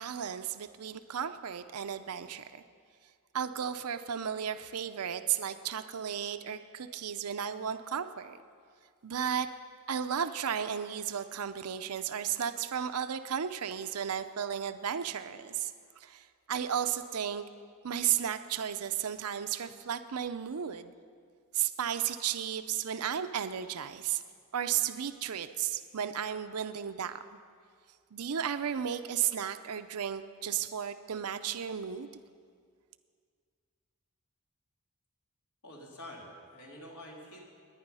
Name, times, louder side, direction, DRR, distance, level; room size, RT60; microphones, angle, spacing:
voice 1, 0.0-2.6 3.3-8.4 9.0-9.5 9.9-17.4 17.8-20.9 21.5-24.2 24.5-27.2 28.1-32.1, right 9 dB, 85° right, 10 dB, 0.6 m, -34 dB
voice 2, 35.6-37.4, left 1 dB, 80° left, -2 dB, 3.2 m, -47 dB
20.0 x 9.8 x 5.5 m, 2.1 s
head